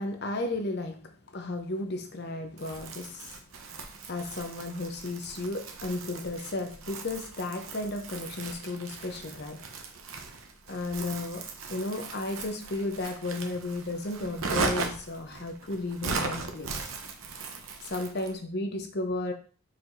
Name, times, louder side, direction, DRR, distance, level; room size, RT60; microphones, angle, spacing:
voice 1, 0.0-9.6 10.7-16.9 17.8-19.3, left 2 dB, 50° left, 5 dB, 0.7 m, -34 dB
Crumpling crinkling, 2.6-18.4, right 4 dB, 75° right, 0.7 m, -38 dB
4.7 x 4.2 x 2.6 m, 0.38 s
head